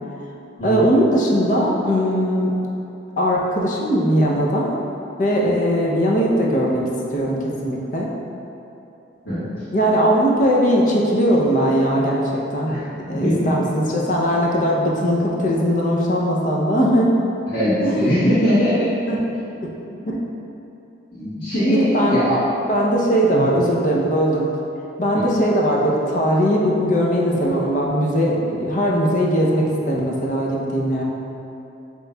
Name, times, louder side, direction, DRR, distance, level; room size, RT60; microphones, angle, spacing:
voice 1, 0.6-2.5 3.2-4.7 5.2-6.8 7.1-8.1 9.7-12.7 13.1-17.1 17.8-18.0 19.1-19.2 19.6-19.7 20.1-20.2 21.7-22.2 22.7-24.4 25.0-31.0, equal, 45° left, -3 dB, 0.6 m, -19 dB
voice 2, 12.7-13.5 17.5-18.7 21.1-22.4 23.3-23.4 25.1-25.2, equal, 75° left, -16 dB, 1.4 m, -21 dB
7.7 x 3.0 x 2.2 m, 2.8 s
head